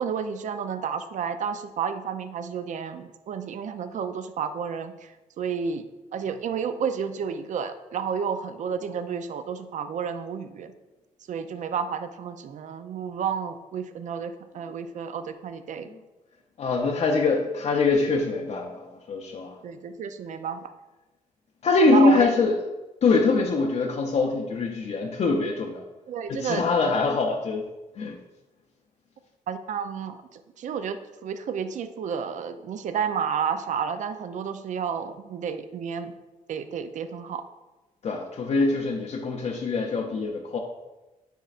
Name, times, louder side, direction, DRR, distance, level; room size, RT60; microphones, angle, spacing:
voice 1, 0.0-5.1 5.4-5.8 6.1-10.7 11.3-15.9 19.6-20.7 21.9-22.3 26.1-26.9 29.5-36.1 36.5-37.4, right 7 dB, 60° right, 10 dB, 0.5 m, -31 dB
voice 2, 16.6-19.6 21.6-22.6 23.0-25.8 26.3-27.7 28.0-28.2 38.0-40.6, left 3 dB, 50° left, 1 dB, 0.6 m, -23 dB
9.1 x 4.3 x 2.5 m, 1.1 s
cardioid pair, 105°, 14 cm